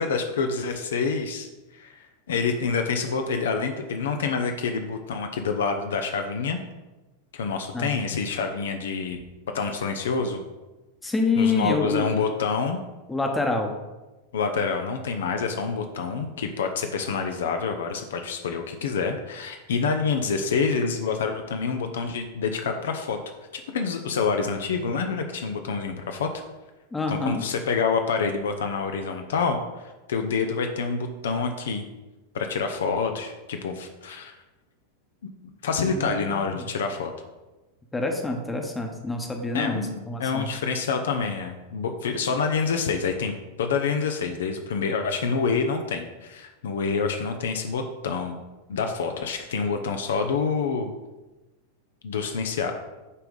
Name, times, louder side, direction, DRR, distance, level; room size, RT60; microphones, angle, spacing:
voice 1, 0.0-6.6 7.3-9.2 9.5-10.4 11.4-12.8 14.3-23.2 23.7-26.3 27.1-31.8 32.3-34.4 35.6-37.1 39.5-43.3 43.6-48.4 48.7-50.9 52.0-52.7, left 5 dB, 60° left, 5 dB, 0.6 m, -27 dB
voice 2, 11.0-12.0 13.1-13.7 26.9-27.4 35.8-36.6 37.9-40.5, left 3 dB, 10° left, 3 dB, 1.0 m, -27 dB
8.3 x 3.5 x 5.3 m, 1.1 s
figure-of-eight pair, 90°, 0 cm